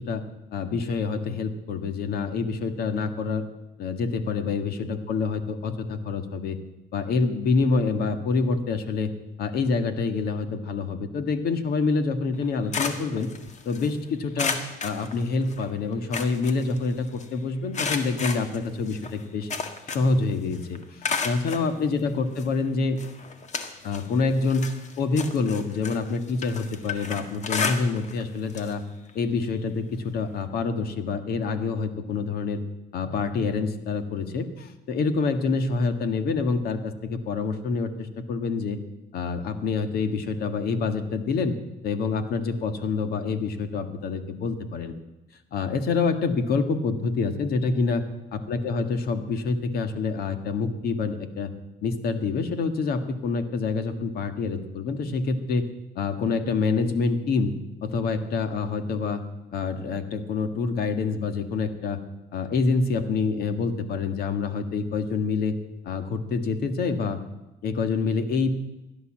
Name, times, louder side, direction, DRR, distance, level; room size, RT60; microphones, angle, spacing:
voice 1, 0.5-3.4 3.8-6.6 6.9-9.1 9.4-13.3 13.7-19.5 19.9-23.0 23.8-28.8 29.1-32.6 32.9-38.8 39.1-41.6 41.8-44.9 45.5-48.0 48.3-51.5 51.8-55.7 56.0-57.5 57.8-59.2 59.5-62.0 62.3-65.5 65.9-67.2 67.6-68.5, left 4 dB, 65° left, 9 dB, 1.8 m, -26 dB
sound 1, 12.3-13.9 14.4-15.6 15.9-17.2 17.7-20.2 20.5-21.7 22.4-22.5 23.0-24.1 24.4-28.2 28.5-28.7 29.1-29.2 30.4-30.5, left 5 dB, 45° left, 1.7 m, -32 dB
16.5 x 11.5 x 7.5 m, 0.99 s
cardioid pair, 110°, 17 cm